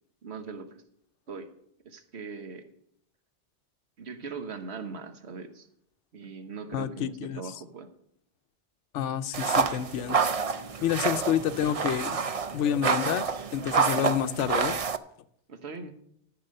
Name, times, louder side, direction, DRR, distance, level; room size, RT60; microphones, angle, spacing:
voice 1, 0.2-0.8 1.3-1.5 1.8-2.6 4.0-5.7 6.1-7.9 15.5-15.9, right 4 dB, 65° right, 8 dB, 1.4 m, -40 dB
voice 2, 6.7-7.4 8.9-10.2 10.8-12.2 12.5-13.3 13.5-14.8, left 10 dB, 90° left, 13 dB, 0.9 m, -28 dB
sound 1, 9.3-15.0, right 5 dB, 45° right, 0.5 m, -28 dB
14.0 x 6.1 x 6.5 m, 0.71 s
omnidirectional pair, 1.2 m